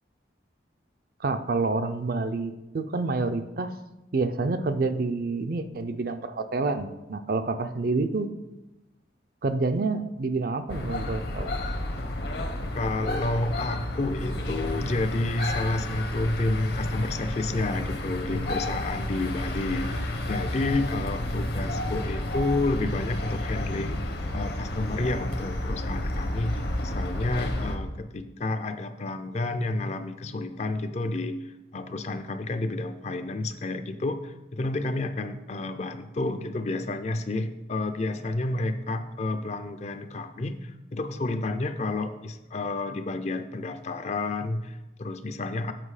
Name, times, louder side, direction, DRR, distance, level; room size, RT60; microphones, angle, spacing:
voice 1, 1.2-3.7 4.1-8.3 9.4-11.5, right 3 dB, 50° right, 10 dB, 0.5 m, -28 dB
sound 1, 10.7-27.8, left 1 dB, 60° left, 1.0 m, -31 dB
voice 2, 12.4-31.4 31.7-45.7, left 2 dB, 35° left, 9 dB, 0.5 m, -30 dB
7.5 x 5.8 x 4.9 m, 1.0 s
head